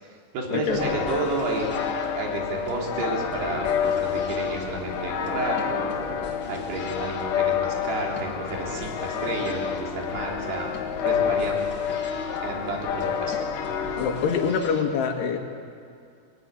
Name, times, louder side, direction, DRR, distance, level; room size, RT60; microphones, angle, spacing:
voice 1, 0.3-1.7 2.2-5.9 6.5-10.7 11.0-11.6 12.4-13.5 13.9-14.0, right 2 dB, 70° right, -1 dB, 5.5 m, -31 dB
sound 1, 0.7-14.5, left 7 dB, 60° left, 2.6 m, -29 dB
sound 2, 0.7-14.8, left 2 dB, 30° left, 2.4 m, -45 dB
voice 2, 14.0-15.4, left 6 dB, 80° left, 4 dB, 4.0 m, -25 dB
24.0 x 19.0 x 9.8 m, 2.3 s
omnidirectional pair, 4.8 m